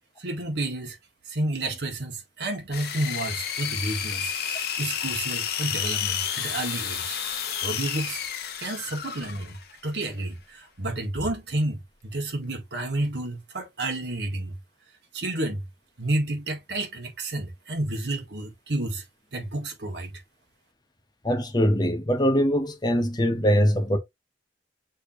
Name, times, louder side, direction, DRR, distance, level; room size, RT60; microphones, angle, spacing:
voice 1, 0.2-1.0 1.2-7.2 7.6-8.2 8.6-9.6 9.8-14.6 15.1-15.6 16.0-19.0 19.3-20.1, right 2 dB, 70° right, 1.5 m, -30 dB
sound 1, 2.7-9.7, left 8 dB, 60° left, 1.0 m, -31 dB
voice 2, 21.2-24.0, equal, 25° left, 0.9 m, -22 dB
6.5 x 3.1 x 2.6 m
head